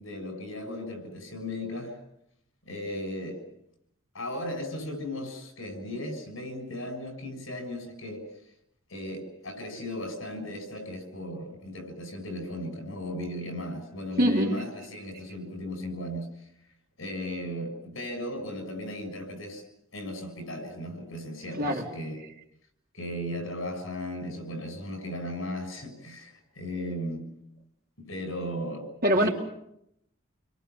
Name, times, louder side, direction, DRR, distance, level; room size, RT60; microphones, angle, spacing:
voice 1, 0.0-2.0 2.6-3.4 4.1-8.2 8.9-16.3 17.0-19.6 19.9-22.2 22.9-27.3 28.0-28.9 29.2-29.3, left 1 dB, 80° left, 6 dB, 6.9 m, -36 dB
voice 2, 14.2-14.5 21.6-21.8 29.0-29.3, equal, 50° right, 0 dB, 4.1 m, -23 dB
28.5 x 22.5 x 7.1 m, 0.78 s
head